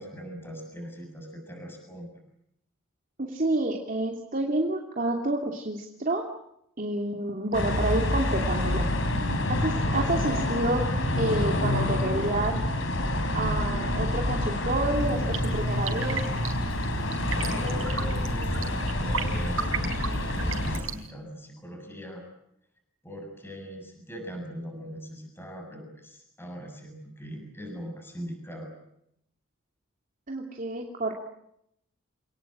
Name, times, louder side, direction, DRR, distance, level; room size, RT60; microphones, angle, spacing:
voice 1, 0.0-2.2 17.5-20.1 20.4-22.3 23.0-28.7, equal, 10° left, 2 dB, 7.3 m, -40 dB
voice 2, 3.2-6.2 6.8-8.9 9.5-10.8 11.2-12.6 13.3-16.2 30.3-31.1, right 2 dB, 40° right, 1 dB, 2.8 m, -29 dB
sound 1, 7.5-20.8, left 1 dB, 70° left, 5.1 m, -27 dB
sound 2, 14.9-21.1, right 5 dB, 90° right, 4.6 m, -36 dB
28.0 x 19.5 x 8.9 m, 0.76 s
head